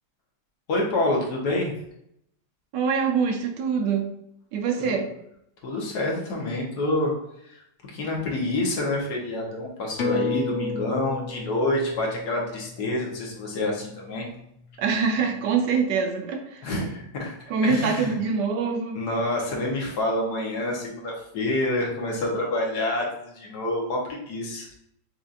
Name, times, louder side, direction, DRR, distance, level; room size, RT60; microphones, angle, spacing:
voice 1, 0.7-1.7 4.8-4.9 5.6-7.1 7.4-7.6 7.9-14.3 16.6-17.3 17.6-18.1 18.9-24.7, left 1 dB, 65° left, -1 dB, 1.5 m, -27 dB
voice 2, 2.7-4.1 4.5-5.1 14.8-16.6 17.5-19.0, right 5 dB, 75° right, 4 dB, 1.2 m, -24 dB
sound 1, 10.0-14.9 15.3-15.4, left 3 dB, 90° left, 0.6 m, -33 dB
6.0 x 2.6 x 2.4 m, 0.75 s
omnidirectional pair, 1.9 m